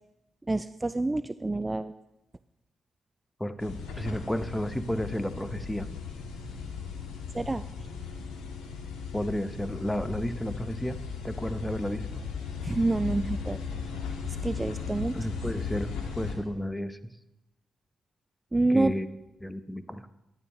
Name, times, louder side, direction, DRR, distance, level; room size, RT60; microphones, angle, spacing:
voice 1, 0.5-1.9 7.3-7.6 12.6-13.6 14.3-15.2 18.5-18.9, right 2 dB, 20° right, 12 dB, 0.3 m, -27 dB
voice 2, 3.4-5.9 9.1-12.1 15.1-17.0 18.7-19.1 19.4-20.1, equal, 10° left, 11 dB, 0.8 m, -32 dB
sound 1, 3.6-16.3, left 5 dB, 90° left, 1.6 m, -37 dB
12.5 x 11.0 x 3.1 m, 0.90 s
supercardioid pair, 60°, 0 cm